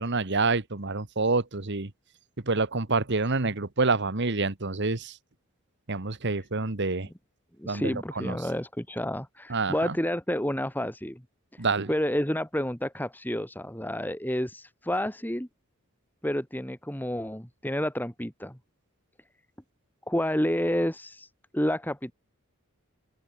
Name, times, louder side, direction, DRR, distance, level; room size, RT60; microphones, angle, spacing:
voice 1, 0.0-1.9 2.5-5.1 5.9-7.1 7.7-8.4 9.5-9.9 11.6-11.9, right 3 dB, 55° right, 1.5 m, -27 dB
voice 2, 7.6-11.2 11.5-15.5 16.2-18.6 20.1-22.1, left 1 dB, 10° left, 3.5 m, -30 dB
open air
head